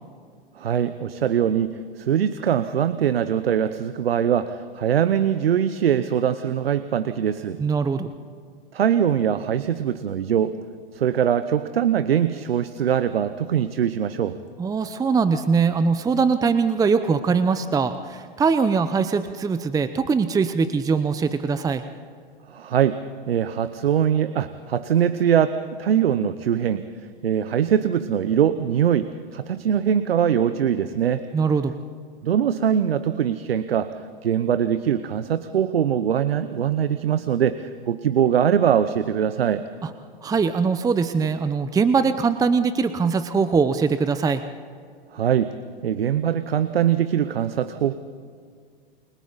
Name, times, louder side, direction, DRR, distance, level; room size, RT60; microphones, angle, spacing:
voice 1, 0.6-7.6 8.7-10.5 10.9-14.4 22.5-23.0 23.3-26.8 27.2-31.3 32.2-33.9 34.2-39.6 45.1-45.5 45.8-47.9, right 9 dB, 80° right, 13 dB, 0.9 m, -22 dB
voice 2, 7.6-8.1 14.6-21.8 31.3-31.7 39.8-39.9 40.2-44.4, right 5 dB, 10° right, 11 dB, 0.8 m, -22 dB
29.0 x 22.5 x 4.1 m, 2.1 s
hypercardioid pair, 105°, 30 cm